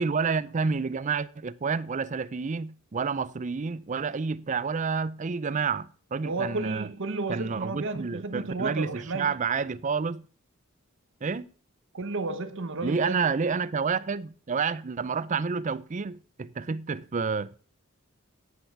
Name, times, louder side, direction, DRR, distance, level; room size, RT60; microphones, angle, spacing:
voice 1, 0.0-6.9 7.3-10.2 11.2-11.5 12.8-17.5, right 5 dB, 35° right, 0.5 m, -29 dB
voice 2, 6.2-9.3 11.9-13.3, right 3 dB, 60° right, 1.0 m, -32 dB
9.6 x 8.8 x 5.8 m
head